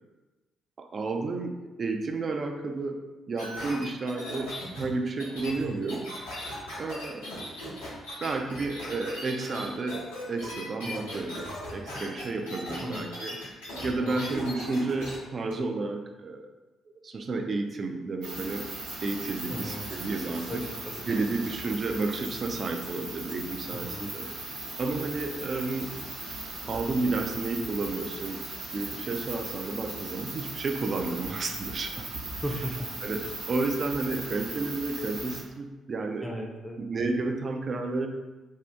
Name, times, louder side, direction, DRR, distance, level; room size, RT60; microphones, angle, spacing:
voice 1, 0.8-3.0 3.3-6.1 6.8-7.3 8.2-13.4 13.8-16.5 17.0-18.7 19.0-20.6 21.1-24.3 24.8-25.9 26.6-28.4 28.7-32.0 33.0-36.5 36.8-38.1, right 3 dB, 45° right, 4 dB, 0.4 m, -31 dB
sound 1, 3.4-15.2 15.5-15.6, left 1 dB, 85° left, 0.8 m, -38 dB
voice 2, 10.8-11.2 12.8-13.1 14.0-14.2 19.5-19.9 20.5-21.0 23.7-24.1 32.4-32.9 36.2-36.8, equal, 10° left, 1 dB, 0.5 m, -37 dB
sound 2, 18.2-35.4, right 2 dB, 75° right, 0.8 m, -38 dB
2.7 x 2.4 x 3.3 m, 1.1 s
figure-of-eight pair, 40°, 0 cm